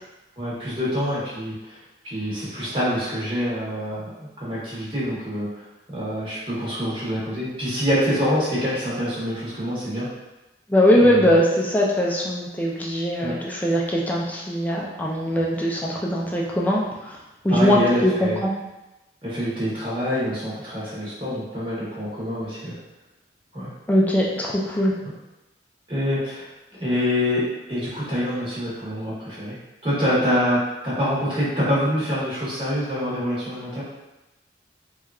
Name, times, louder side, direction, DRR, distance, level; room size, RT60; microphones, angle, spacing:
voice 1, 0.4-1.8 2.0-4.1 4.4-5.5 5.9-10.1 11.0-11.4 13.2-13.4 17.5-18.4 19.2-22.8 23.5-23.7 25.9-26.5 26.8-33.8, equal, 30° right, -9 dB, 0.9 m, -26 dB
voice 2, 10.7-16.8 17.4-18.5 23.9-24.9, equal, 10° left, -3 dB, 0.3 m, -21 dB
2.9 x 2.3 x 2.3 m, 1.0 s
head